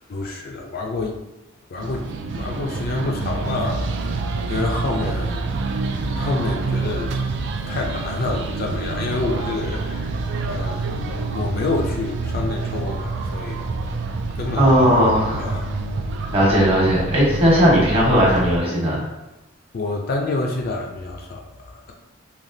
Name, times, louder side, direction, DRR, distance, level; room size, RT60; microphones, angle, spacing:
voice 1, 0.1-1.2 1.7-5.5 6.2-7.1 7.7-10.1 10.4-13.6 14.3-14.7 15.1-15.7 19.7-21.9, left 3 dB, 45° left, 1 dB, 0.4 m, -28 dB
sound 1, 1.8-18.6, right 3 dB, 60° right, 0.3 m, -27 dB
voice 2, 14.5-15.4 16.3-19.0, equal, 30° right, -6 dB, 1.2 m, -17 dB
3.4 x 2.8 x 2.7 m, 1.0 s
head